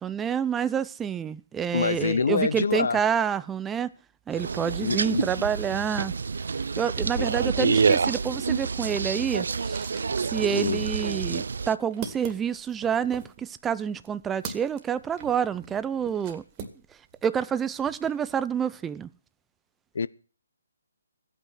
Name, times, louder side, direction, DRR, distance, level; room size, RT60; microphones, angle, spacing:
voice 1, 0.0-3.9 4.3-6.1 6.8-9.9 10.2-16.4 17.2-19.1, right 8 dB, 10° right, 15 dB, 0.6 m, -28 dB
voice 2, 1.7-3.0 4.8-5.4 7.2-7.3 7.6-7.8 10.5-10.9 19.9-20.1, left 5 dB, 65° left, 18 dB, 0.8 m, -26 dB
sound 1, 4.3-11.7, right 5 dB, 65° right, 0.5 m, -27 dB
sound 2, 7.5-17.2 17.5-18.4, right 6 dB, 25° right, 2.1 m, -43 dB
15.5 x 9.0 x 5.8 m, 0.40 s
figure-of-eight pair, 145°, 0 cm